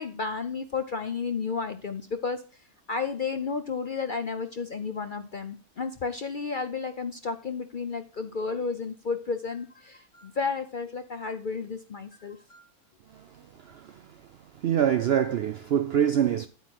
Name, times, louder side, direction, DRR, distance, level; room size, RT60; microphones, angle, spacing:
voice 1, 0.0-2.4 2.9-12.7, left 5 dB, 55° left, 0.6 m, -32 dB
voice 2, 13.7-14.0 14.6-16.5, right 9 dB, 70° right, 0.6 m, -24 dB
9.6 x 9.1 x 2.9 m
omnidirectional pair, 1.6 m